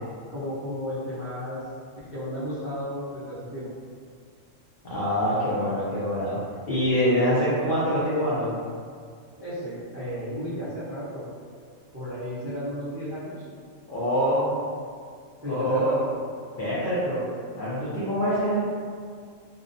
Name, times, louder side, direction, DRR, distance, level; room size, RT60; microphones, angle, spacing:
voice 1, 0.3-1.6 2.1-3.7 9.4-11.3 11.9-13.4 15.4-16.2, equal, 25° right, -12 dB, 0.3 m, -33 dB
voice 2, 4.8-6.4 6.7-8.5 13.9-14.5 15.4-16.0 16.6-17.2 17.6-18.6, equal, 60° left, -10 dB, 0.5 m, -25 dB
2.6 x 2.0 x 2.5 m, 2.1 s
omnidirectional pair, 1.4 m